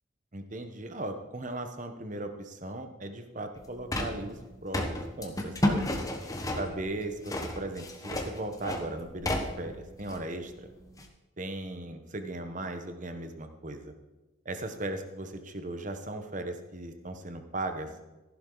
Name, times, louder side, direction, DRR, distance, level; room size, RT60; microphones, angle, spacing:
voice 1, 0.3-5.9 6.6-10.7 11.4-13.9 14.4-17.9, right 2 dB, 40° right, 7 dB, 1.2 m, -37 dB
sound 1, 3.6-11.1, left 1 dB, 15° left, 1.2 m, -33 dB
14.5 x 11.0 x 4.0 m, 1.1 s
head